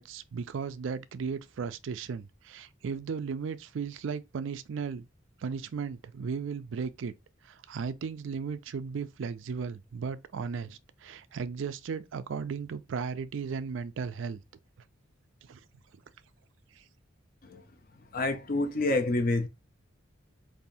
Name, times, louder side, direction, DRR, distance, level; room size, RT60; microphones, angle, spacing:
voice 1, 0.0-5.1 5.4-7.1 7.4-14.4 15.5-15.6, right 5 dB, 70° right, 0.4 m, -36 dB
voice 2, 18.1-19.5, left 2 dB, 45° left, 0.5 m, -27 dB
5.4 x 2.6 x 2.7 m
head